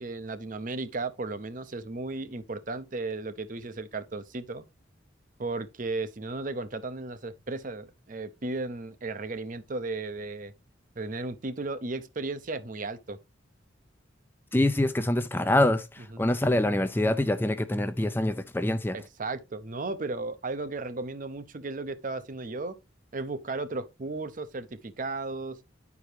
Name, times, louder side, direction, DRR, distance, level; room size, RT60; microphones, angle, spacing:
voice 1, 0.0-4.6 5.4-10.5 11.0-13.2 18.9-22.8 23.1-25.6, right 3 dB, 45° right, 0.6 m, -35 dB
voice 2, 14.5-19.0, left 1 dB, 10° left, 0.4 m, -25 dB
10.0 x 4.8 x 3.3 m
head